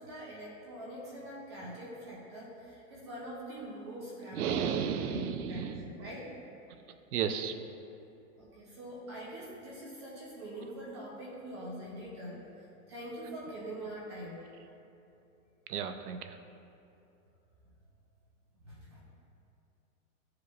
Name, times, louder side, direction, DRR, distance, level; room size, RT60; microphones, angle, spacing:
voice 1, 0.0-6.3 8.4-12.4 12.9-14.4 18.6-19.0, right 1 dB, 20° right, -6 dB, 0.7 m, -44 dB
voice 2, 4.3-5.9 7.1-7.6 15.7-16.4, right 7 dB, 85° right, 8 dB, 0.7 m, -33 dB
12.5 x 4.8 x 2.4 m, 2.8 s
supercardioid pair, 175°, 44 cm